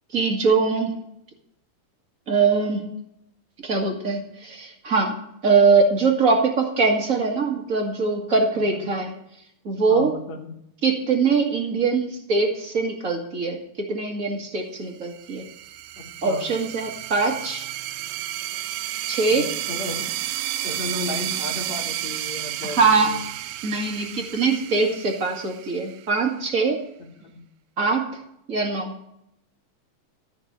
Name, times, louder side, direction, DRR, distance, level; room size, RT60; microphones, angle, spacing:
voice 1, 0.1-0.9 2.3-2.9 3.6-9.1 9.6-10.1 10.8-13.6 13.9-15.4 16.2-17.7 19.1-19.5 22.6-23.1 23.6-26.8 27.8-28.1 28.5-28.9, right 4 dB, 35° right, 1 dB, 1.6 m, -22 dB
voice 2, 8.6-8.9 9.9-10.5 15.9-16.4 19.3-20.1 20.6-23.2 27.0-27.4, left 3 dB, 60° left, 3 dB, 2.7 m, -34 dB
sound 1, 15.0-26.3, right 13 dB, 90° right, 2.3 m, -32 dB
14.0 x 5.5 x 8.7 m, 0.75 s
omnidirectional pair, 3.8 m